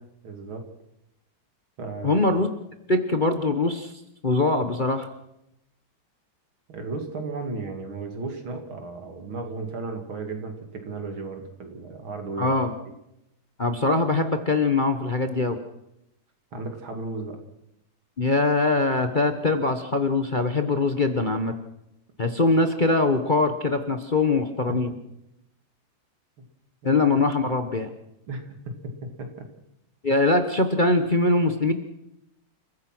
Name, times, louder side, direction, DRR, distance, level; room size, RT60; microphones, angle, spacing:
voice 1, 0.2-0.6 1.8-2.2 6.7-12.6 16.5-17.4 24.7-25.0 28.3-28.6 29.2-29.3, right 3 dB, 75° right, 5 dB, 3.3 m, -34 dB
voice 2, 2.0-2.5 2.9-3.9 4.2-5.1 12.4-12.7 13.6-15.6 18.2-21.5 22.2-24.9 26.8-27.9 30.0-31.7, left 2 dB, 30° left, 7 dB, 1.0 m, -22 dB
29.0 x 15.0 x 6.2 m, 0.85 s
omnidirectional pair, 2.2 m